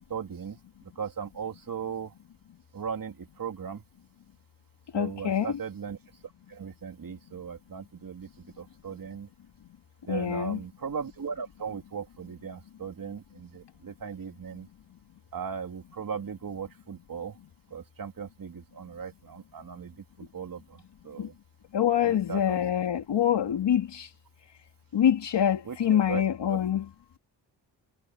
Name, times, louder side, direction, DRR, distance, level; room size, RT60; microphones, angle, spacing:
voice 1, 0.1-0.6 1.0-2.1 2.7-3.8 4.9-6.0 6.5-8.3 8.6-9.3 10.0-14.7 15.3-17.3 17.7-19.9 20.2-21.3 22.1-22.6 25.7-26.2 26.5-26.6, right 6 dB, 50° right, 2.9 m, -37 dB
voice 2, 4.9-5.6 10.1-10.6 21.2-21.3 21.7-24.1 24.9-26.9, left 10 dB, 70° left, 2.4 m, -25 dB
cardioid pair, 65°, 44 cm